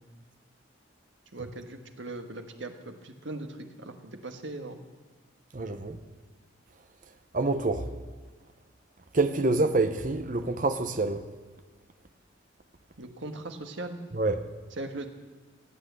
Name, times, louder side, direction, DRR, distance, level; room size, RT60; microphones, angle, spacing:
voice 1, 1.3-4.8 13.0-14.0 14.7-15.1, right 2 dB, 75° right, 1.5 m, -39 dB
voice 2, 5.5-6.0 7.3-7.8 9.1-11.2 14.1-14.4, right 3 dB, 40° right, 0.8 m, -26 dB
18.0 x 8.5 x 8.2 m
head